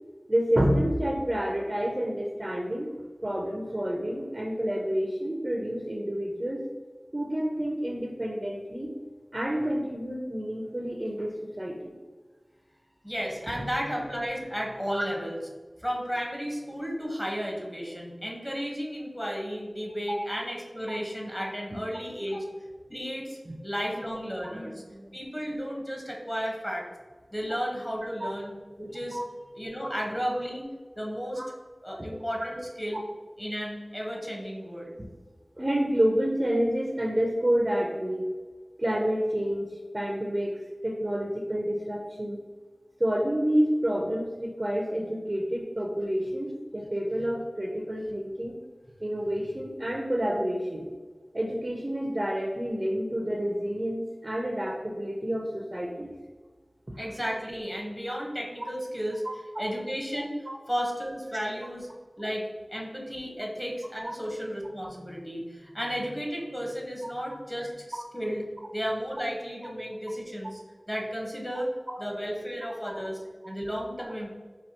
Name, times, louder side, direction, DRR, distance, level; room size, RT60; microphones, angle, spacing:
voice 1, 0.3-2.9 3.2-6.6 7.1-8.9 9.3-11.9 14.9-15.0 20.1-20.3 20.9-21.0 23.5-23.6 24.5-25.1 28.2-28.3 29.1-29.2 31.4-31.5 35.6-38.3 38.8-42.4 43.0-48.5 49.0-50.9 51.3-56.1 59.5-59.7 60.5-60.6 71.9-72.0 72.9-73.0, equal, 30° right, 0 dB, 0.5 m, -29 dB
voice 2, 13.0-15.4 15.8-22.4 22.9-23.4 23.6-24.8 25.1-26.9 27.3-28.5 28.8-29.2 29.5-30.7 31.0-31.4 31.8-33.0 33.4-34.9 57.0-59.2 59.6-60.3 60.7-61.9 62.2-68.4 68.7-70.6 70.9-71.7 72.0-74.3, equal, 10° left, -2 dB, 1.0 m, -33 dB
4.3 x 2.8 x 2.8 m, 1.4 s
wide cardioid pair, 55°, 0 cm